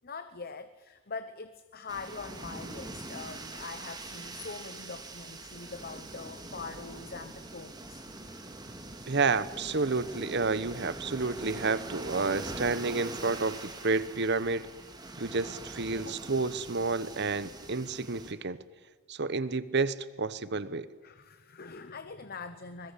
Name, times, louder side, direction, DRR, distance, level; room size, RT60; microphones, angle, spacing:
voice 1, 0.0-8.1 16.0-16.2 21.0-22.9, left 4 dB, 45° left, 11 dB, 1.0 m, -43 dB
sound 1, 1.9-18.3, right 2 dB, 20° right, 2.3 m, -43 dB
voice 2, 9.1-14.7 15.2-18.6 19.1-20.9, right 3 dB, 50° right, 16 dB, 1.0 m, -30 dB
24.0 x 21.5 x 8.4 m, 1.4 s
head